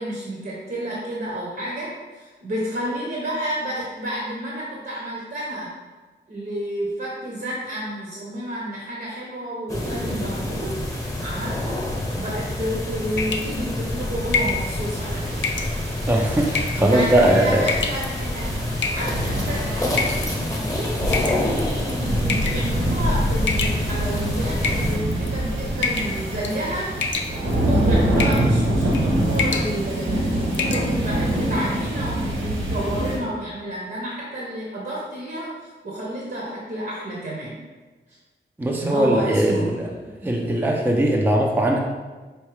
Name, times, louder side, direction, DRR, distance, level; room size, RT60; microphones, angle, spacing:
voice 1, 0.0-5.7 6.3-10.8 11.2-11.9 12.1-15.4 16.7-18.6 18.9-37.6 38.1-38.2 38.8-39.7, right 1 dB, 50° right, -4 dB, 0.8 m, -30 dB
sound 1, 9.7-25.0, left 1 dB, 15° left, 0.9 m, -27 dB
sound 2, 13.2-13.6 14.3-14.6 15.4-15.7 16.5-16.9 17.6-18.1 18.8-19.3 20.0-20.3 21.1-21.7 22.3-22.7 23.5-24.1 24.6-25.3 25.8-26.2 26.4-26.7 27.0-27.6 28.2-28.5 28.8-29.0 29.3-29.7 30.1-30.2 30.5-30.9, left 5 dB, 75° left, 0.4 m, -26 dB
sound 3, 13.9-33.2, right 1 dB, 75° right, 1.3 m, -26 dB
voice 2, 16.1-17.6 38.6-39.9 40.2-41.8, right 1 dB, 10° right, 0 dB, 0.4 m, -20 dB
4.5 x 2.7 x 3.2 m, 1.3 s
wide cardioid pair, 75°, 19 cm